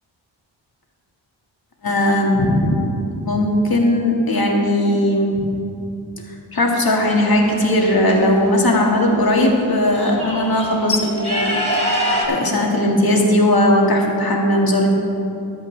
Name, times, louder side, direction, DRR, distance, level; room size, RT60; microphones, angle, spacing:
voice 1, 1.8-2.8 3.2-5.5 6.3-11.9 12.3-14.9, left 1 dB, 50° left, -1 dB, 1.9 m, -18 dB
sound 1, 7.0-8.1 9.3-9.4 9.7-12.3, equal, 15° left, 2.7 m, -25 dB
14.0 x 11.5 x 3.3 m, 2.7 s
wide cardioid pair, 75°, 47 cm